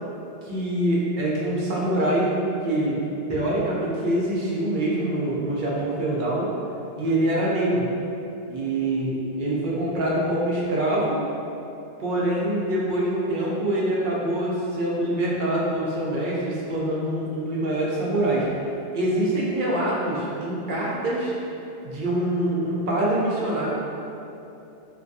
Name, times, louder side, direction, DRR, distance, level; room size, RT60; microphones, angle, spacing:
voice 1, 0.4-2.3 2.6-3.0 3.3-6.5 7.0-7.9 8.5-11.2 12.0-18.5 18.9-21.3 21.8-23.7, right 1 dB, 60° right, -5 dB, 0.6 m, -25 dB
3.3 x 2.2 x 2.6 m, 2.9 s
omnidirectional pair, 1.1 m